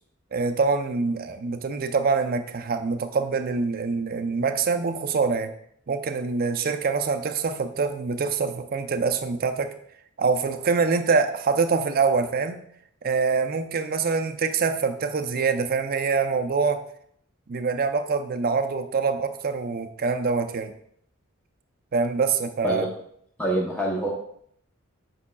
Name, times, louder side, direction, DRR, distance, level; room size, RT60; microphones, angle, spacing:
voice 1, 0.3-5.5 5.9-9.7 10.2-12.6 13.0-16.8 17.5-20.7 21.9-22.9, right 4 dB, 45° right, 7 dB, 0.5 m, -25 dB
voice 2, 23.4-24.1, right 1 dB, 10° left, -5 dB, 0.8 m, -25 dB
8.3 x 5.6 x 2.3 m, 0.68 s
head